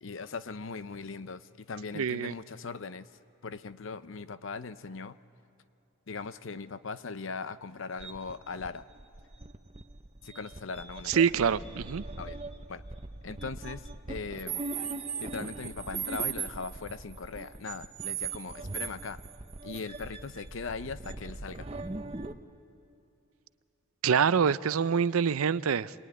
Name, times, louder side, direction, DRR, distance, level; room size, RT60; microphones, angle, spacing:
voice 1, 0.0-3.1 3.4-5.2 6.1-8.9 10.2-11.3 12.2-12.4 12.7-12.8 13.2-14.7 15.2-19.2 19.6-21.7, left 4 dB, 65° left, 13 dB, 0.7 m, -39 dB
voice 2, 1.9-2.3 11.1-12.0 24.0-25.9, right 7 dB, 85° right, 17 dB, 0.5 m, -26 dB
sound 1, 8.0-22.3, right 5 dB, 25° right, 0.8 m, -39 dB
26.0 x 21.0 x 9.6 m, 2.6 s
head